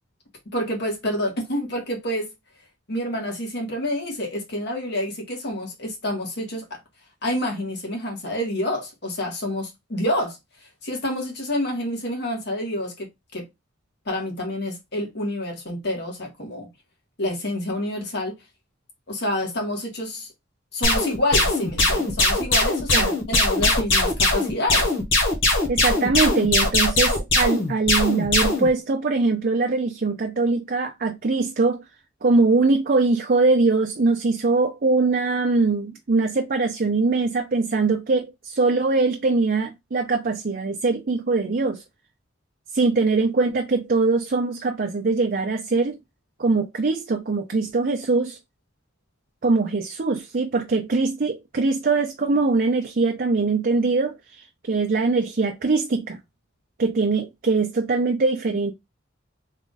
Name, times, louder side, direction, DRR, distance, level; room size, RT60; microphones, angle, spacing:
voice 1, 0.5-2.3 2.9-6.8 7.2-10.4 10.8-13.5 14.0-16.7 17.2-18.3 19.1-20.3 20.7-24.9, left 1 dB, 60° left, 1.6 m, -28 dB
sound 1, 20.8-28.7, left 2 dB, 85° left, 1.4 m, -20 dB
voice 2, 25.7-31.8 32.2-41.8 42.7-46.0 46.4-48.4 49.4-54.2 54.7-56.2 56.8-58.7, right 3 dB, 50° right, 0.6 m, -22 dB
3.6 x 2.4 x 4.0 m
head